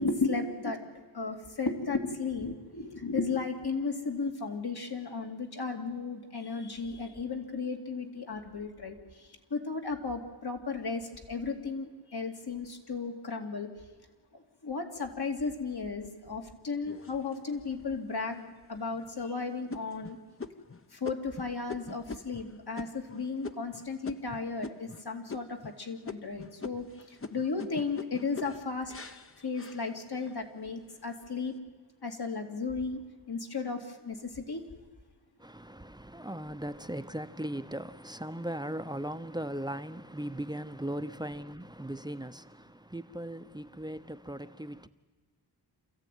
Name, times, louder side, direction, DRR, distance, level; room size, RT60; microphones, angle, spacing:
voice 1, 0.0-13.7 14.3-20.2 20.9-28.9 29.4-31.5 32.0-33.0 33.3-34.6, left 4 dB, 65° left, 2.7 m, -35 dB
sound 1, 16.9-17.7 18.3-18.4 18.9-19.2 19.7-25.0 25.3-25.8 26.1-30.4 30.9-31.4, left 4 dB, 30° left, 1.0 m, -44 dB
voice 2, 35.4-44.9, right 1 dB, 10° right, 0.9 m, -38 dB
27.5 x 14.5 x 9.3 m
cardioid pair, 60°, 41 cm